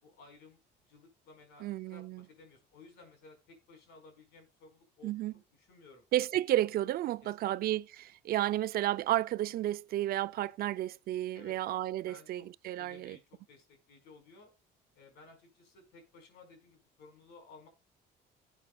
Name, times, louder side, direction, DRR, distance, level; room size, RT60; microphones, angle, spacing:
voice 1, 0.0-0.6 0.9-5.1 5.6-6.0 7.2-7.5 11.3-11.6 12.1-12.5 12.8-14.5 14.9-17.7, left 3 dB, 85° left, 4.6 m, -57 dB
voice 2, 1.6-2.2 5.0-5.3 6.1-13.2, right 14 dB, 65° right, 0.5 m, -32 dB
17.5 x 8.3 x 2.3 m
cardioid pair, 110°, 17 cm